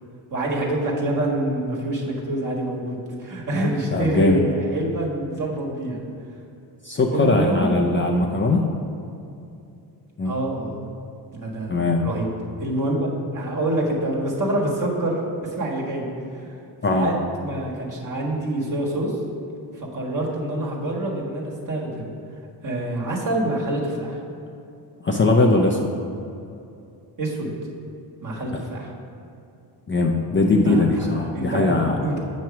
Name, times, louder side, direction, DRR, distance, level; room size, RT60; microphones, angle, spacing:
voice 1, 0.3-6.0 7.1-7.7 8.4-8.6 10.2-10.9 11.3-12.3 12.6-16.1 16.3-16.5 16.9-17.1 17.4-19.1 19.7-22.1 22.6-24.2 27.2-27.5 28.2-28.9 30.6-32.2, right 1 dB, 40° right, -3 dB, 1.6 m, -26 dB
voice 2, 3.9-4.4 6.8-8.7 10.2-10.3 11.7-12.1 16.8-17.1 25.0-26.0 28.5-28.7 29.9-32.0, left 2 dB, 25° left, 1 dB, 0.5 m, -20 dB
7.3 x 3.1 x 5.8 m, 2.6 s
cardioid pair, 70°, 47 cm